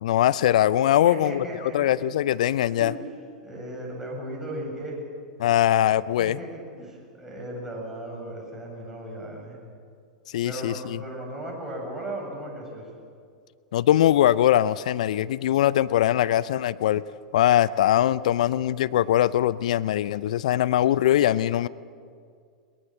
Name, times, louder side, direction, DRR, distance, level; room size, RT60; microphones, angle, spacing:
voice 1, 0.0-1.5 1.7-2.9 5.4-6.4 10.3-11.0 13.7-17.0 17.3-21.7, left 12 dB, 65° left, 17 dB, 0.5 m, -21 dB
voice 2, 1.0-1.9 2.8-3.0 3.4-5.0 6.2-9.6 10.4-12.9, right 1 dB, 10° right, -2 dB, 7.8 m, -36 dB
22.0 x 19.5 x 7.6 m, 2.2 s
figure-of-eight pair, 95°, 4 cm